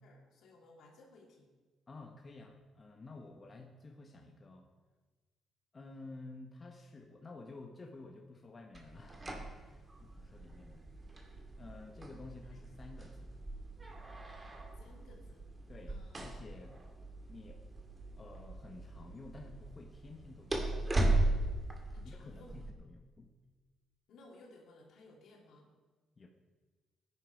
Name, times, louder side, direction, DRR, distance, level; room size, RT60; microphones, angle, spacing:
voice 1, 0.0-1.5 12.5-12.6 14.8-15.4 15.9-16.4 21.9-22.6 24.1-25.7, left 2 dB, 75° left, 0 dB, 3.0 m, -59 dB
voice 2, 1.9-4.7 5.7-10.8 11.6-13.4 15.7-16.7 17.3-17.6 18.2-20.6 22.0-23.3 26.2-26.3, left 3 dB, 35° left, 1 dB, 1.3 m, -52 dB
sound 1, 8.7-22.7, right 1 dB, 25° right, 2.2 m, -38 dB
16.5 x 10.0 x 4.8 m, 1.3 s
cardioid pair, 90°, 0 cm